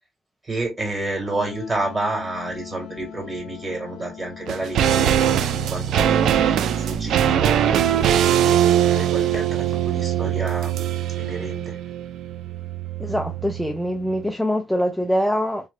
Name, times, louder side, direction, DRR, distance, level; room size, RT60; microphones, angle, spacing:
voice 1, 0.4-10.9 11.2-11.8, right 2 dB, 25° right, 2.2 m, -30 dB
Wind instrument woodwind instrument, 1.3-6.8, left 10 dB, 85° left, 0.6 m, -42 dB
sound 1, 4.5-13.9 14.1-14.2, right 10 dB, 80° right, 0.3 m, -21 dB
sound 2, 4.6-10.6, left 4 dB, 55° left, 0.9 m, -43 dB
voice 2, 13.0-15.7, equal, ahead, 0.5 m, -24 dB
3.2 x 3.2 x 2.3 m
cardioid pair, 90°, 0 cm